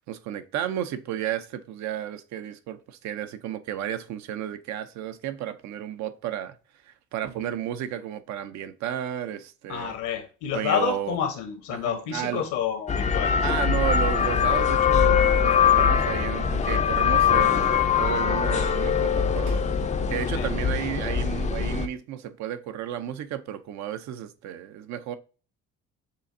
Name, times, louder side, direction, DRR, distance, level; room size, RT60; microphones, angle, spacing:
voice 1, 0.1-6.5 6.9-9.9 10.5-11.2 11.7-12.5 13.4-19.6 20.1-25.2, right 10 dB, 70° right, 0.6 m, -32 dB
voice 2, 9.7-13.4 20.3-20.5, left 8 dB, 80° left, 1.2 m, -29 dB
sound 1, 12.9-21.9, left 7 dB, 25° left, 0.4 m, -22 dB
Slam, 15.5-16.6 18.7-18.9 19.4-20.6, right 3 dB, 90° right, 1.2 m, -46 dB
6.6 x 2.5 x 2.6 m
supercardioid pair, 80°, 29 cm